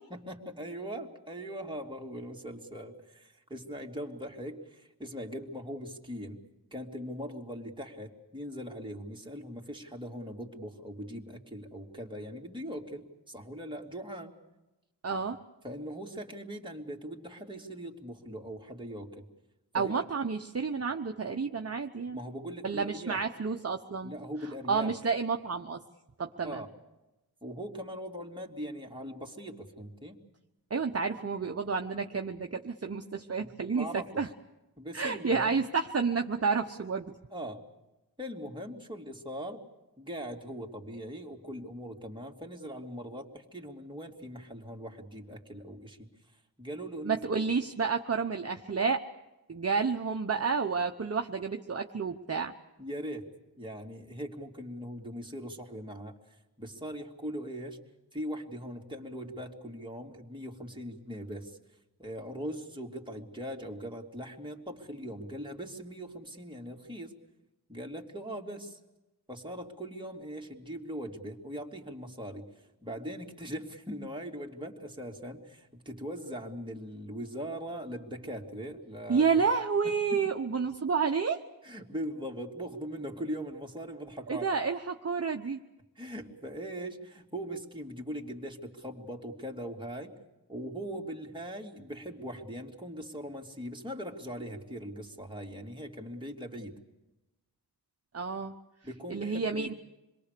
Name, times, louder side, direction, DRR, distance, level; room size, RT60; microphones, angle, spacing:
voice 1, 0.1-6.4 6.7-14.3 15.6-19.2 19.7-19.9 22.1-23.2 24.0-24.9 26.4-26.7 27.4-30.2 33.4-34.3 34.8-35.5 37.3-37.6 38.2-39.6 40.0-46.1 46.6-47.4 52.8-53.3 53.6-56.1 56.6-57.8 58.1-61.6 62.0-67.1 67.7-68.8 69.3-72.5 72.8-79.3 80.1-80.2 81.6-84.5 86.0-90.1 90.5-96.7 98.8-99.7, equal, 10° right, 0 dB, 3.0 m, -40 dB
voice 2, 15.0-15.4 19.7-22.2 22.6-24.1 24.7-25.8 26.2-26.6 30.7-34.3 34.9-37.1 47.0-49.0 49.5-52.5 79.1-81.4 84.3-85.6 98.1-98.5 99.1-99.7, right 5 dB, 40° right, 5 dB, 1.0 m, -30 dB
27.0 x 22.0 x 6.8 m, 1.0 s
wide cardioid pair, 85°, 39 cm